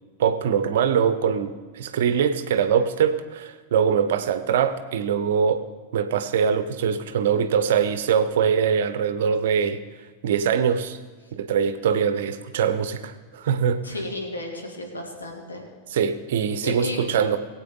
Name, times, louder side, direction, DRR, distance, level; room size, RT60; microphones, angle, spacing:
voice 1, 0.2-5.6 5.9-9.8 10.2-11.0 11.3-13.8 15.9-17.4, right 7 dB, 55° right, 11 dB, 0.8 m, -23 dB
voice 2, 13.8-15.6 16.6-17.1, left 1 dB, 75° left, 0 dB, 2.4 m, -33 dB
20.0 x 8.5 x 3.9 m, 1.5 s
figure-of-eight pair, 90°, 0 cm